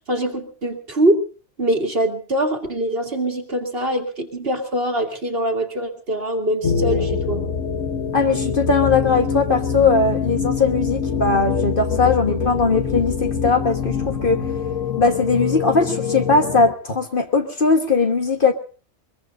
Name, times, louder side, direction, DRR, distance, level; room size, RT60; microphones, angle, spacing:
voice 1, 0.1-1.2 1.6-7.4, right 1 dB, 45° right, 2.2 m, -23 dB
sound 1, 6.6-16.7, left 6 dB, 70° left, 1.5 m, -24 dB
voice 2, 8.1-14.5 15.0-18.5, left 4 dB, 40° left, 1.4 m, -19 dB
23.5 x 21.5 x 2.6 m
omnidirectional pair, 1.4 m